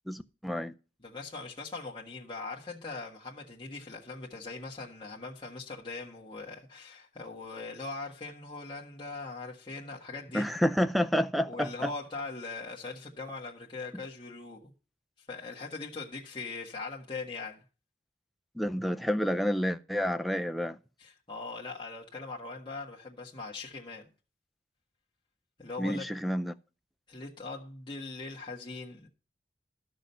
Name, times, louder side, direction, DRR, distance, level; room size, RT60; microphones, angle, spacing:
voice 1, 0.1-0.7 10.3-11.9 18.6-20.8 25.8-26.5, equal, ahead, 0.5 m, -29 dB
voice 2, 1.0-10.5 11.5-14.7 15.3-17.6 21.0-24.1 25.6-26.1 27.1-29.1, left 3 dB, 25° left, 1.5 m, -41 dB
12.5 x 6.3 x 5.5 m
head